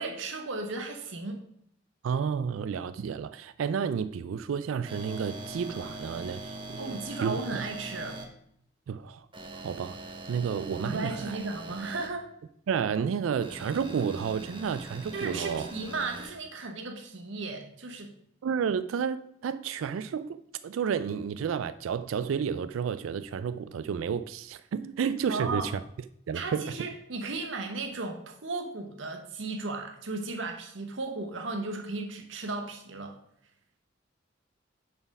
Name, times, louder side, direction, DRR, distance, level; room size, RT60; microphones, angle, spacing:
voice 1, 0.0-1.4 6.8-8.2 10.8-12.3 15.1-18.1 25.3-25.7 26.3-33.2, right 3 dB, 70° right, 0.9 m, -35 dB
voice 2, 2.0-7.6 8.9-9.3 9.5-10.0 10.3-11.4 12.7-15.7 18.4-20.4 20.6-25.8 26.3-26.8, right 7 dB, 90° right, 0.3 m, -31 dB
sound 1, 4.9-8.2 9.3-12.1 13.4-16.3, right 2 dB, 25° right, 0.9 m, -42 dB
6.8 x 4.5 x 5.9 m
head